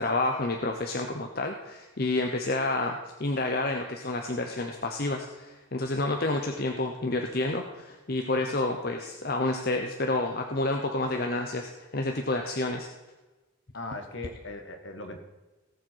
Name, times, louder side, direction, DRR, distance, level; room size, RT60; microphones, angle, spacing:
voice 1, 0.0-12.9, left 2 dB, 45° left, 3 dB, 0.8 m, -29 dB
voice 2, 13.7-15.2, left 2 dB, 65° left, 6 dB, 1.6 m, -39 dB
18.0 x 7.4 x 4.6 m, 1.2 s
head